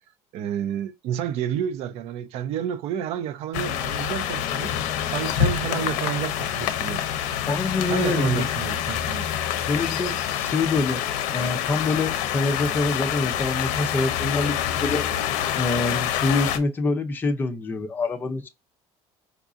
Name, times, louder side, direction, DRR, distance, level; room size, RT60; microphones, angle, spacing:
voice 1, 0.3-4.7 5.1-7.1 7.9-9.3, right 9 dB, 50° right, 0.4 m, -30 dB
sound 1, 3.5-16.6, left 10 dB, 70° left, 0.6 m, -26 dB
voice 2, 7.5-8.5 9.7-11.0 11.3-15.1 15.6-18.5, left 3 dB, 15° left, 0.5 m, -25 dB
4.7 x 2.6 x 2.4 m
cardioid pair, 170°, 13 cm